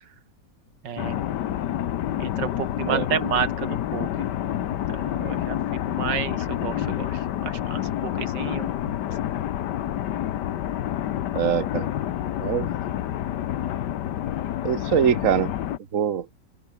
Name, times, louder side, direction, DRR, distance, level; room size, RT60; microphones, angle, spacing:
voice 1, 0.8-1.2 2.2-4.3 4.9-7.1 7.4-8.7, right 8 dB, 80° right, 2.2 m, -31 dB
sound 1, 1.0-15.8, left 11 dB, 70° left, 1.5 m, -28 dB
voice 2, 11.3-11.9 12.4-12.7 14.6-15.5 15.9-16.3, right 8 dB, 50° right, 1.5 m, -23 dB
open air
omnidirectional pair, 1.9 m